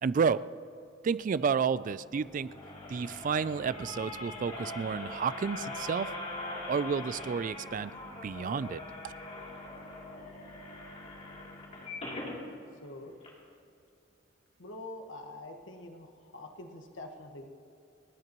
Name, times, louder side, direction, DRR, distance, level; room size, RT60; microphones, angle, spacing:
voice 1, 0.0-0.4 1.0-2.6 2.9-6.1 6.7-7.9 8.2-9.1, right 6 dB, 45° right, 16 dB, 0.3 m, -31 dB
sound 1, 1.8-13.3, left 1 dB, ahead, 3.2 m, -53 dB
sound 2, 2.2-12.4 12.8-12.9 13.2-13.3, left 2 dB, 35° left, 2.9 m, -42 dB
voice 2, 12.8-13.1 14.6-17.5, left 2 dB, 85° left, 4 dB, 1.3 m, -45 dB
30.0 x 10.5 x 3.0 m, 2.6 s
head